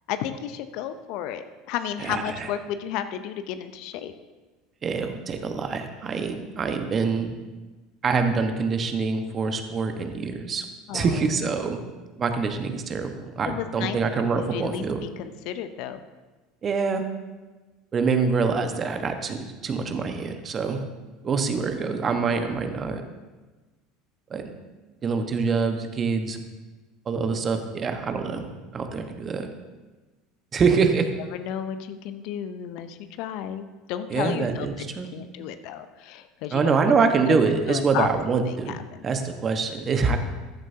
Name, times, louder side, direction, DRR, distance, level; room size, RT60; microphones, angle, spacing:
voice 1, 0.1-4.1 10.9-11.2 13.4-16.0 31.3-34.9 35.1-37.1 37.7-38.1 38.5-39.1, left 10 dB, 60° left, 10 dB, 0.7 m, -33 dB
voice 2, 2.0-2.5 4.8-7.3 8.0-10.7 10.9-11.8 12.2-15.0 16.6-17.0 17.9-20.9 21.2-23.0 24.3-24.5 25.0-26.4 27.1-29.5 30.5-31.1 34.1-35.1 36.5-38.8 39.0-40.2, right 5 dB, 35° right, 6 dB, 1.3 m, -25 dB
14.5 x 11.0 x 2.8 m, 1.2 s
hypercardioid pair, 75°, 0 cm